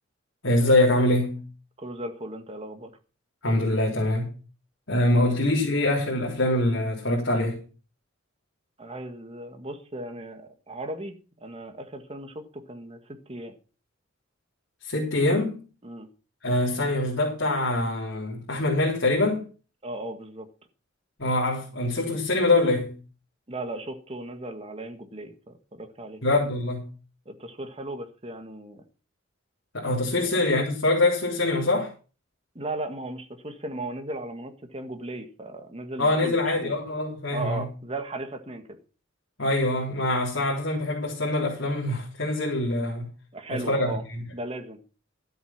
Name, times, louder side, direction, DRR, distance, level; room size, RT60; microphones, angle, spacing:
voice 1, 0.4-1.5 3.4-4.4 4.9-7.6 14.8-15.6 16.4-19.5 21.2-23.0 26.2-26.9 29.7-31.9 36.0-37.6 39.4-43.1 43.5-44.2, left 2 dB, 75° left, 3.7 m, -24 dB
voice 2, 1.8-2.9 5.3-5.4 8.8-13.5 15.8-16.1 19.8-20.5 23.5-26.2 27.3-28.8 30.2-30.3 32.6-36.8 37.3-38.8 43.3-44.0 44.3-44.8, right 2 dB, 30° right, 1.7 m, -36 dB
12.5 x 7.9 x 5.8 m
head